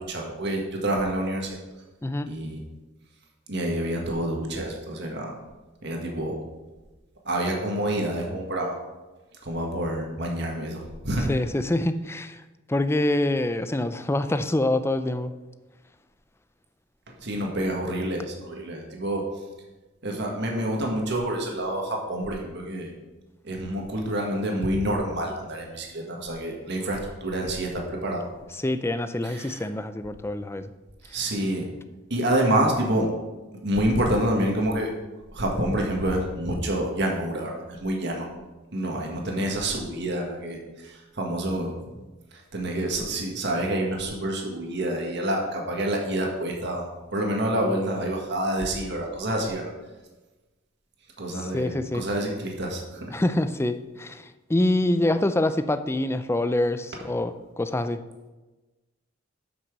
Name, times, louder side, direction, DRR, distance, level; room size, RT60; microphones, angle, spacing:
voice 1, 0.0-1.6 2.3-2.6 3.5-5.3 5.8-6.3 7.2-8.8 9.4-11.3 17.1-19.3 20.0-22.9 23.4-28.3 29.2-29.7 31.1-31.7 32.1-33.1 33.6-34.9 35.3-38.3 38.7-41.7 42.3-49.7 51.2-53.2, right 1 dB, 60° right, 0 dB, 1.7 m, -28 dB
voice 2, 11.3-12.4 12.7-15.3 28.6-30.6 51.5-52.0 53.1-58.0, left 1 dB, 15° left, 11 dB, 0.4 m, -25 dB
8.2 x 6.0 x 6.1 m, 1.2 s
head